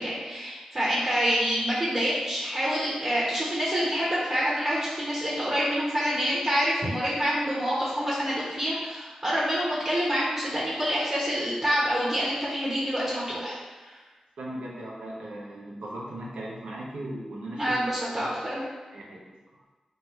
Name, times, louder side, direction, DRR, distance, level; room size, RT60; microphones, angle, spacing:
voice 1, 0.0-14.0 17.6-18.6, equal, 30° right, -8 dB, 1.1 m, -27 dB
voice 2, 14.4-18.4 18.9-19.2, right 1 dB, 90° right, -4 dB, 0.7 m, -38 dB
3.2 x 2.3 x 4.2 m, 1.3 s
cardioid pair, 50°, 2 cm